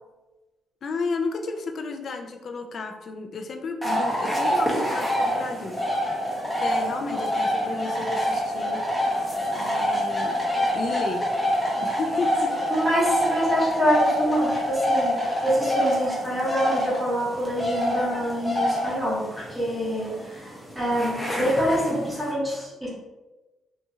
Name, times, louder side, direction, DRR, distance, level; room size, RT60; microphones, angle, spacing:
voice 1, 0.8-5.8 6.6-8.8 9.6-10.4 10.7-11.3 11.8-12.5, left 4 dB, 50° left, 4 dB, 0.3 m, -32 dB
sound 1, 3.8-22.3, equal, 10° left, 0.7 m, -26 dB
voice 2, 12.7-22.9, equal, 10° right, -7 dB, 1.0 m, -25 dB
2.7 x 2.4 x 2.7 m, 1.1 s
cardioid pair, 105°, 0 cm